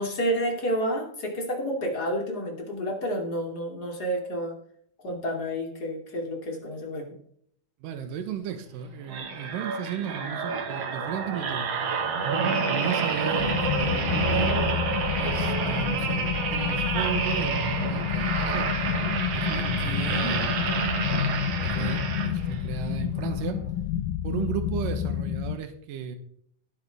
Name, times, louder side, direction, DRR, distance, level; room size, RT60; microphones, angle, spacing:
voice 1, 0.0-4.6 5.0-7.1 19.6-20.3, equal, 30° left, 1 dB, 2.7 m, -30 dB
voice 2, 7.8-11.7 12.4-14.6 15.2-18.7 19.3-20.7 21.6-23.6 24.2-26.2, right 8 dB, 80° right, 7 dB, 2.8 m, -34 dB
sound 1, 9.1-22.7 23.2-23.4, right 5 dB, 55° right, 2.2 m, -29 dB
sound 2, 13.4-25.6, left 10 dB, 90° left, 2.4 m, -29 dB
17.0 x 8.0 x 3.4 m, 0.65 s
omnidirectional pair, 3.9 m